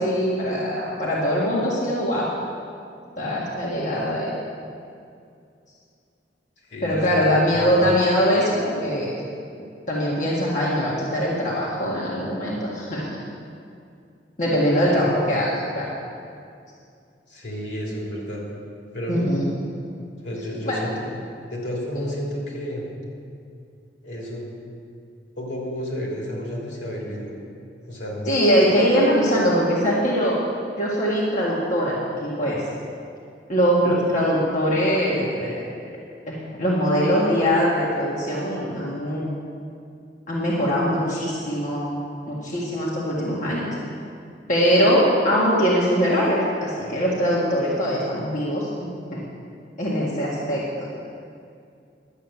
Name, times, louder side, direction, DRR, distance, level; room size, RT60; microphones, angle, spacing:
voice 1, 0.0-2.3 3.2-4.4 6.8-9.1 9.9-13.0 14.4-15.9 19.1-19.4 20.6-20.8 28.3-30.4 30.8-32.6 33.5-35.7 36.3-39.3 40.3-42.0 42.3-43.8 44.5-48.7 49.1-49.2 49.8-50.9, equal, 45° left, -6 dB, 1.9 m, -22 dB
voice 2, 6.7-7.8 17.3-18.4 18.9-19.3 20.2-21.2 21.5-22.8 24.0-24.5 25.4-27.3 27.8-28.3, equal, 75° left, -2 dB, 3.3 m, -31 dB
11.5 x 8.5 x 7.3 m, 2.4 s
head